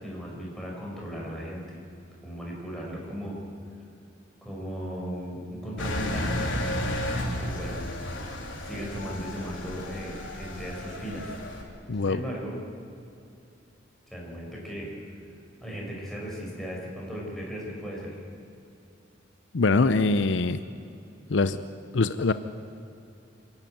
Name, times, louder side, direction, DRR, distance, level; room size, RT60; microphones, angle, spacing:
voice 1, 0.0-1.8 2.2-3.4 4.4-6.3 7.4-7.8 8.6-11.3 12.0-12.6 14.1-14.9 15.6-18.2, equal, ahead, -4 dB, 5.6 m, -36 dB
Engine, 5.8-11.6, left 1 dB, 90° left, 3.2 m, -32 dB
voice 2, 11.9-12.2 19.5-20.6 21.3-21.6 21.9-22.3, left 3 dB, 70° left, 12 dB, 0.6 m, -23 dB
26.5 x 11.5 x 9.3 m, 2.6 s
head